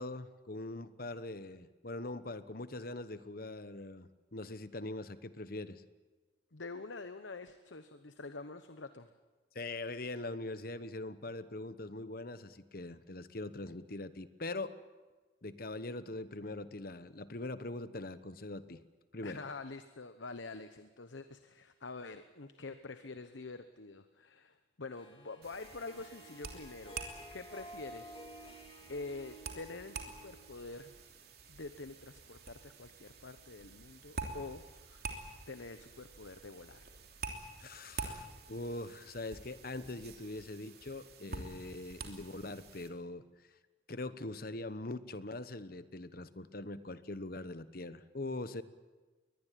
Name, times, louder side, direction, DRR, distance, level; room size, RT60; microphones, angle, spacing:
voice 1, 0.0-5.8 9.5-14.7 15.4-18.8 19.1-19.4 37.6-43.2 43.9-48.6, left 2 dB, 50° left, 13 dB, 1.1 m, -42 dB
voice 2, 6.5-9.1 19.2-27.0 27.3-28.5 28.9-31.0 31.5-35.1 35.5-36.9, left 3 dB, 75° left, 10 dB, 1.0 m, -46 dB
Harp, 24.9-31.2, right 1 dB, 30° left, 2.9 m, -53 dB
sound 1, 25.4-42.9, right 3 dB, 55° right, 3.1 m, -48 dB
22.5 x 20.0 x 9.2 m, 1.3 s
head